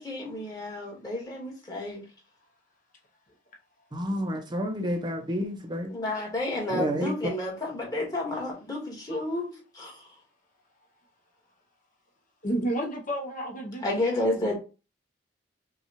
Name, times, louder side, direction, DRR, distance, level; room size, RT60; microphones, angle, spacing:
voice 1, 0.0-2.0 5.9-9.9 13.8-14.5, left 1 dB, 20° left, 1.6 m, -31 dB
voice 2, 3.9-5.9 6.7-7.1, equal, 25° right, 0.6 m, -30 dB
voice 3, 12.4-14.5, right 1 dB, 45° left, 0.9 m, -32 dB
5.4 x 2.3 x 3.0 m
head